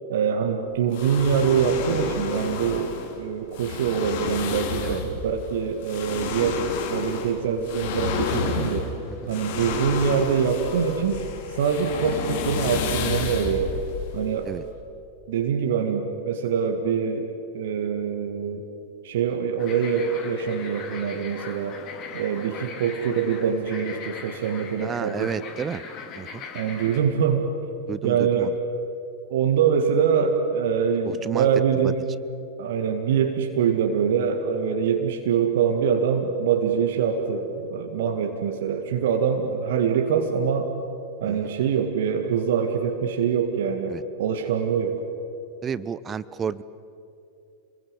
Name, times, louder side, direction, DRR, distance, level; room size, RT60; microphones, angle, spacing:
voice 1, 0.1-8.9 9.3-11.2 11.5-13.7 14.1-14.5 15.3-18.6 19.0-21.8 22.1-25.3 26.5-27.5 28.0-28.6 29.3-32.0 32.6-40.7 41.2-45.0, right 7 dB, 55° right, 4 dB, 1.9 m, -24 dB
sound 1, 0.9-14.8, left 6 dB, 50° left, 2.9 m, -31 dB
sound 2, 19.6-27.0, left 5 dB, 35° left, 3.8 m, -40 dB
voice 2, 24.8-25.8 26.2-26.4 27.9-28.5 31.0-31.5 31.8-31.9 41.3-41.5 43.9-44.0 45.6-46.6, right 7 dB, 20° right, 18 dB, 0.8 m, -31 dB
28.0 x 21.5 x 8.1 m, 2.7 s
figure-of-eight pair, 90°, 0 cm